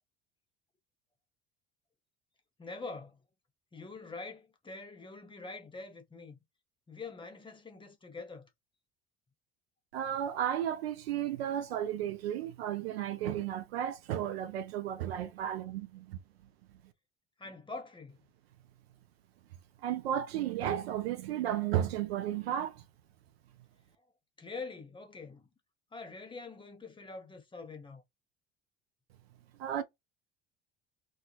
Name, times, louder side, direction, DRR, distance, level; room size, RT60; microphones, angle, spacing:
voice 1, 2.6-3.2 3.7-6.4 6.9-8.5 17.4-18.2 24.4-25.5 25.9-28.0, left 3 dB, 15° left, 0.7 m, -45 dB
voice 2, 9.9-16.2 19.8-22.8 29.6-29.8, right 10 dB, 75° right, 0.5 m, -33 dB
2.5 x 2.4 x 2.3 m
figure-of-eight pair, 60°, 31 cm